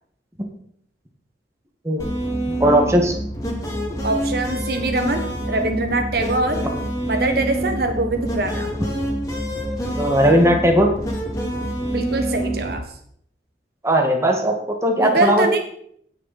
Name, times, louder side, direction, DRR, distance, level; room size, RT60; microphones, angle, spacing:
sound 1, 2.0-12.8, right 1 dB, 20° left, 2.7 m, -26 dB
voice 1, 2.6-3.2 10.0-10.9 13.8-15.5, equal, 15° right, 2 dB, 1.7 m, -17 dB
voice 2, 4.0-5.2 5.5-6.6 7.1-8.7 11.9-12.8 14.9-15.6, right 2 dB, 60° right, 5 dB, 1.4 m, -23 dB
17.5 x 6.5 x 4.2 m, 0.65 s
head